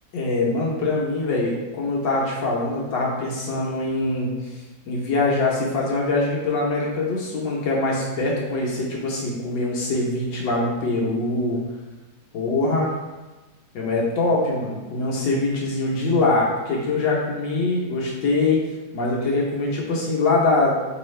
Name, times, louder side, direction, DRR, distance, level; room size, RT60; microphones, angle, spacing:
voice 1, 0.1-4.5 4.9-11.6 12.3-12.9 13.7-18.6 18.9-20.7, left 2 dB, 65° left, -3 dB, 1.4 m, -23 dB
4.7 x 3.3 x 3.1 m, 1.2 s
omnidirectional pair, 2.3 m